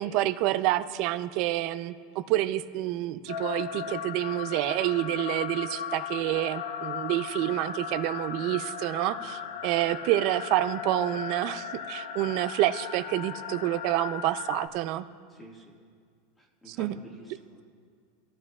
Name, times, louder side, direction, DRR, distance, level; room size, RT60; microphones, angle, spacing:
voice 1, 0.0-15.1 16.7-17.0, right 15 dB, 40° right, 11 dB, 0.5 m, -28 dB
sound 1, 3.3-14.7, left 8 dB, 90° left, 0.9 m, -37 dB
voice 2, 9.2-9.5 15.3-15.8 16.4-17.6, right 1 dB, 10° left, -1 dB, 1.8 m, -50 dB
25.0 x 14.5 x 2.4 m, 2.1 s
supercardioid pair, 170°, 0 cm